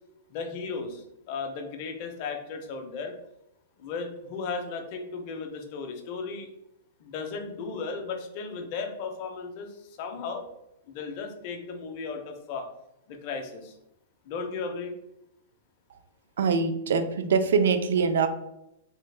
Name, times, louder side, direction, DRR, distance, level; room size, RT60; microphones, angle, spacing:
voice 1, 0.3-3.1 3.8-6.5 7.0-10.5 10.9-12.7 13.1-13.8 14.2-14.9, left 4 dB, 35° left, 4 dB, 0.4 m, -35 dB
voice 2, 16.4-18.3, right 5 dB, 80° right, 9 dB, 0.3 m, -23 dB
3.3 x 2.1 x 3.1 m, 0.83 s
supercardioid pair, 175°, 0 cm